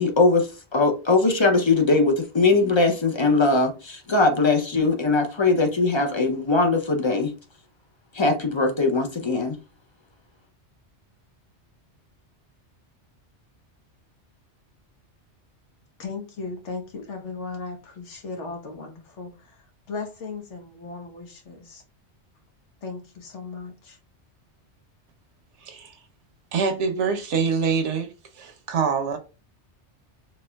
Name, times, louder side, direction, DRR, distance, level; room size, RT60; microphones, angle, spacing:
voice 1, 0.0-7.3 8.1-9.6, left 3 dB, 35° left, 0.4 m, -21 dB
voice 2, 16.0-21.8 22.8-24.0, left 4 dB, 85° left, 1.4 m, -37 dB
voice 3, 25.6-25.9 26.5-28.1 28.4-29.2, right 5 dB, 85° right, 1.1 m, -25 dB
4.3 x 3.3 x 2.2 m
omnidirectional pair, 1.2 m